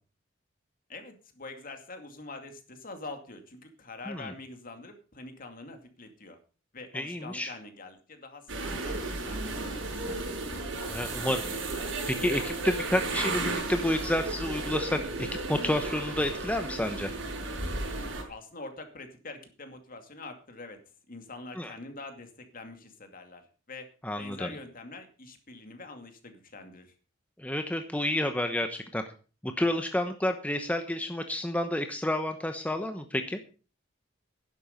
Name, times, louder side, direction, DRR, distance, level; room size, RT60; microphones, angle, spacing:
voice 1, 0.9-6.4 6.7-10.3 18.3-20.8 21.1-23.9 24.2-26.9, left 3 dB, 45° left, 6 dB, 2.4 m, -45 dB
voice 2, 6.9-7.5 10.9-11.4 12.1-17.1 21.6-21.7 24.0-24.5 27.4-29.0 29.4-33.4, left 1 dB, 5° left, 6 dB, 0.9 m, -30 dB
sound 1, 8.5-18.2, right 2 dB, 70° right, 5.4 m, -34 dB
12.0 x 11.0 x 5.2 m, 0.36 s
head